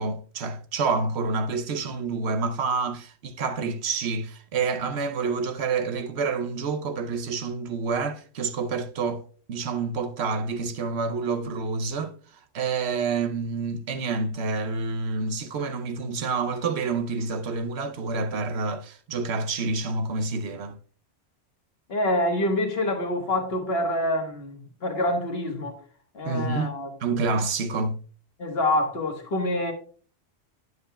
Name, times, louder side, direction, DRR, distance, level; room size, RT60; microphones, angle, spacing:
voice 1, 0.0-9.2 9.5-12.1 12.5-20.8 26.2-26.7 27.0-28.0, right 4 dB, 65° right, 0.9 m, -28 dB
voice 2, 21.9-25.8 26.1-26.9 28.4-29.7, left 1 dB, 55° left, 1.5 m, -26 dB
9.3 x 7.5 x 2.2 m
omnidirectional pair, 1.3 m